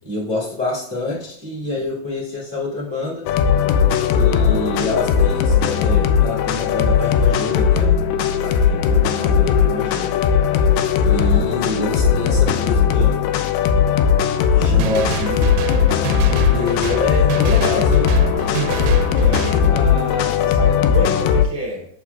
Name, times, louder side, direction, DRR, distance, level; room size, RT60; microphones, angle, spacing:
voice 1, 0.0-3.3 4.1-8.0 8.4-10.2 11.0-13.5 14.5-15.5 16.5-18.1, left 2 dB, 10° right, -7 dB, 1.5 m, -26 dB
sound 1, 3.3-21.5, left 7 dB, 80° left, 2.1 m, -17 dB
sound 2, 14.6-19.7, right 8 dB, 85° right, 2.4 m, -27 dB
voice 2, 19.2-21.9, equal, 10° left, -4 dB, 1.6 m, -28 dB
8.2 x 6.8 x 2.3 m, 0.65 s
omnidirectional pair, 4.0 m